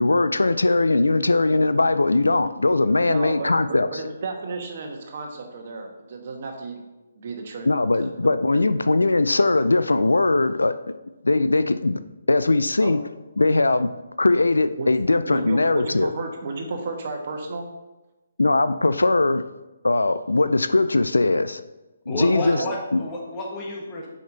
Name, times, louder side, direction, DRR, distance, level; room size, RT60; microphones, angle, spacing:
voice 1, 0.0-3.9 7.7-10.7 11.2-12.0 12.3-13.0 13.4-13.9 14.2-16.1 18.4-19.4 19.8-21.6 22.1-22.6 22.9-23.0, left 2 dB, 90° left, 0.4 m, -20 dB
voice 2, 3.1-6.8 7.2-7.7 8.0-8.7 12.8-12.9 14.8-14.9 15.3-17.6 22.5-22.7, right 3 dB, 50° right, 1.2 m, -33 dB
voice 3, 22.1-24.1, left 1 dB, 25° left, 1.7 m, -30 dB
6.7 x 5.2 x 4.0 m
figure-of-eight pair, 145°, 0 cm